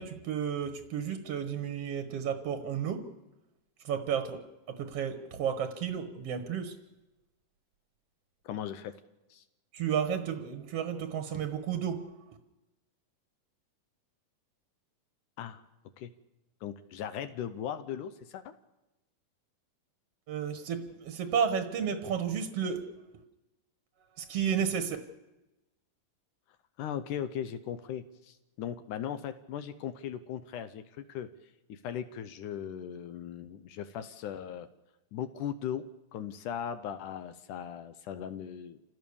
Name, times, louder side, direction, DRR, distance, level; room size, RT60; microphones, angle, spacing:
voice 1, 0.0-3.1 3.9-4.4 4.8-6.8 9.7-12.0 20.3-22.9 24.3-25.0, right 7 dB, 55° right, 7 dB, 1.8 m, -32 dB
voice 2, 8.5-8.9 9.3-9.4 15.4-15.6 16.0-16.1 16.6-18.5 26.8-31.3 31.7-34.7 35.1-38.8, left 9 dB, 70° left, 11 dB, 2.2 m, -38 dB
27.5 x 16.5 x 7.0 m, 1.0 s
omnidirectional pair, 4.1 m